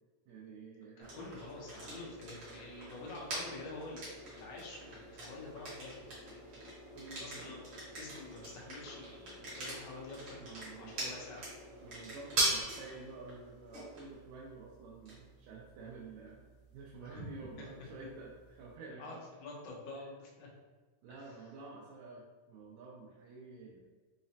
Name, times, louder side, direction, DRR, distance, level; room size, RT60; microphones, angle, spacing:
voice 1, 0.3-1.1 6.9-7.5 10.4-11.1 11.8-16.4 16.7-19.2 21.0-23.9, right 3 dB, 80° right, -4 dB, 2.1 m, -50 dB
voice 2, 1.0-6.4 7.2-11.5 17.0-17.3 17.6-17.9 19.0-20.5 21.2-21.3, left 2 dB, 85° left, -2 dB, 1.4 m, -48 dB
sound 1, 1.0-18.7, right 1 dB, 55° right, 1.3 m, -42 dB
5.7 x 2.0 x 2.7 m, 1.3 s
omnidirectional pair, 3.9 m